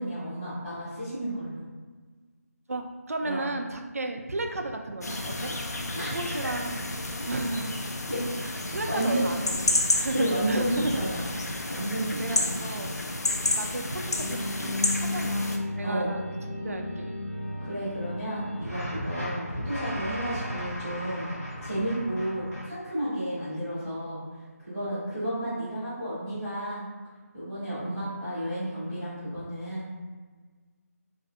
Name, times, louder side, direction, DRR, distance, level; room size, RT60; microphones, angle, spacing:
voice 1, 0.0-1.6 3.2-3.5 5.9-6.1 6.4-6.5 8.1-8.2 8.9-9.2 10.1-11.2 11.6-12.6 15.8-16.1 17.6-21.3 21.6-24.2 24.6-26.8 27.3-30.0, right 1 dB, ahead, -32 dB, 0.4 m, -32 dB
voice 2, 2.7-5.5 6.1-6.9 7.3-7.7 8.4-10.6 11.6-11.7 12.2-12.9 13.6-16.2 16.6-17.1 19.1-19.2 22.0-22.1 24.9-25.1 29.3-29.4, right 2 dB, 65° right, 4 dB, 0.3 m, -34 dB
sound 1, 5.0-15.6, left 2 dB, 80° left, 0.4 m, -31 dB
sound 2, 14.2-22.6, left 1 dB, 60° left, 0.8 m, -34 dB
2.6 x 2.5 x 2.4 m, 1.4 s
figure-of-eight pair, 180°, 9 cm